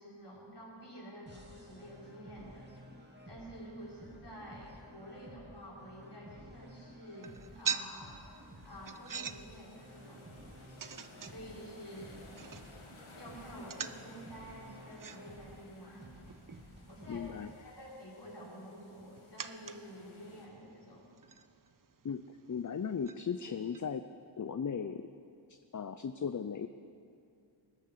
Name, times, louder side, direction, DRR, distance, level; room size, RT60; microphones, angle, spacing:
voice 1, 0.0-2.7 3.3-10.2 11.2-12.4 13.1-16.1 16.6-21.1, equal, 55° left, -6 dB, 5.0 m, -49 dB
sound 1, 1.3-17.3, equal, 20° right, 2.5 m, -54 dB
sound 2, 7.1-23.8, right 7 dB, 45° right, 0.6 m, -46 dB
sound 3, 7.2-20.5, left 2 dB, 90° left, 1.7 m, -58 dB
voice 2, 17.1-17.5 22.0-24.1 24.4-25.1 25.5-26.7, left 6 dB, 40° left, 10 dB, 0.5 m, -37 dB
19.5 x 10.5 x 6.6 m, 2.5 s
wide cardioid pair, 55°, 48 cm